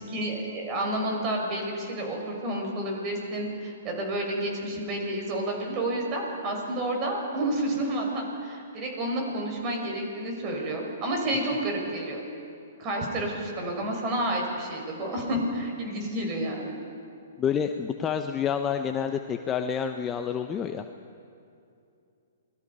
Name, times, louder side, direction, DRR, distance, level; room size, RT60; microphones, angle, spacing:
voice 1, 0.0-12.2 12.8-16.8, right 1 dB, 30° right, 1 dB, 6.1 m, -30 dB
voice 2, 17.4-20.8, left 7 dB, 20° left, 6 dB, 0.8 m, -28 dB
29.0 x 20.5 x 5.5 m, 2.5 s
hypercardioid pair, 135°, 0 cm